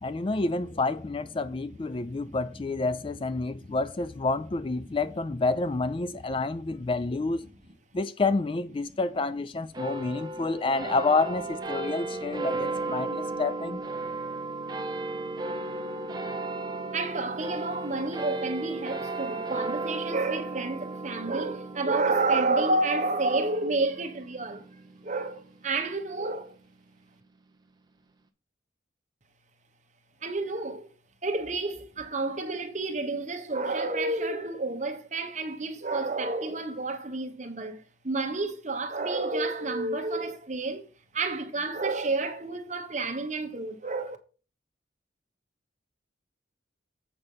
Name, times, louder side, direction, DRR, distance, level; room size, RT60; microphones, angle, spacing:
voice 1, 0.0-7.4 7.9-13.8, left 3 dB, 25° left, 0.3 m, -29 dB
voice 2, 1.9-2.4 3.6-3.7 13.3-13.4 14.0-14.1 16.9-24.7 25.0-26.5 30.2-30.9 31.2-40.9 41.1-44.2, right 3 dB, 40° right, 1.2 m, -30 dB
sound 1, 9.7-26.5, right 2 dB, 20° right, 1.0 m, -35 dB
8.0 x 5.3 x 5.6 m
head